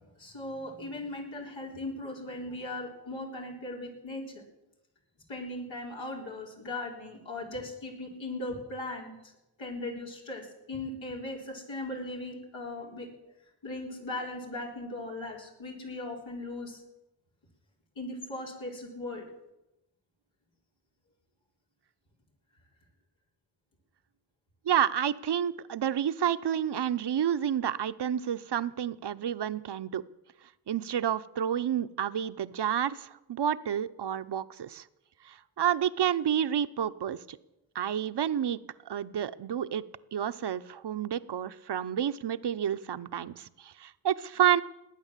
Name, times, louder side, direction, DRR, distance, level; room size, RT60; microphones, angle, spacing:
voice 1, 0.0-4.4 5.3-9.3 9.6-13.1 13.6-16.8 18.0-19.2, left 2 dB, 85° left, -2 dB, 4.0 m, -38 dB
voice 2, 24.6-30.0 30.7-34.8 35.2-37.4 37.7-38.6 38.8-39.8 40.1-44.6, right 9 dB, 60° right, 14 dB, 0.8 m, -29 dB
19.5 x 8.9 x 7.4 m, 0.93 s
cardioid pair, 50°, 45 cm